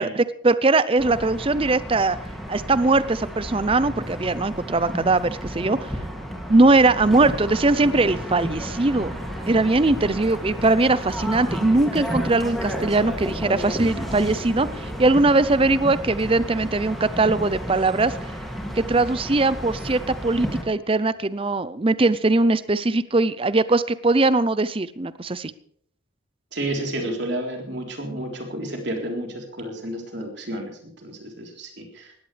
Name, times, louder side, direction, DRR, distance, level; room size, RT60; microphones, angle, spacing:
voice 1, 0.0-2.2 2.5-5.9 6.5-9.1 9.5-18.1 18.7-25.5, right 2 dB, 25° right, 15 dB, 0.5 m, -20 dB
sound 1, 1.0-20.6, equal, ahead, 2.5 m, -32 dB
sound 2, 5.8-22.1, right 1 dB, 90° right, 6.0 m, -46 dB
sound 3, 13.7-16.0 16.3-17.3 18.1-18.5 19.5-19.7, equal, 25° left, 3.3 m, -40 dB
voice 2, 26.5-32.2, right 1 dB, 55° right, 2 dB, 3.8 m, -31 dB
19.0 x 15.5 x 3.4 m, 0.65 s
head